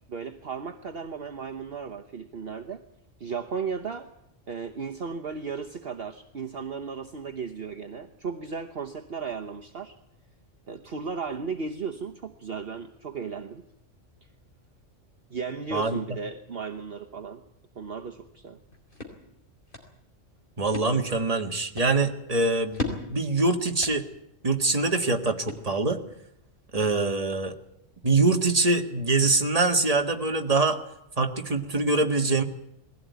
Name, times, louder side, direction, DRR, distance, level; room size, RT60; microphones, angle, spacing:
voice 1, 0.1-2.8 3.2-4.1 4.5-10.0 10.7-13.6 15.3-17.4 17.7-18.6, right 5 dB, 50° right, 5 dB, 1.3 m, -35 dB
sound 1, 18.5-26.1, left 3 dB, 40° left, 4.3 m, -40 dB
voice 2, 20.6-24.1 24.4-26.0 26.7-27.6 28.0-30.8 31.2-32.4, right 3 dB, 30° right, 4 dB, 1.8 m, -24 dB
21.0 x 16.0 x 9.5 m, 0.80 s
omnidirectional pair, 1.3 m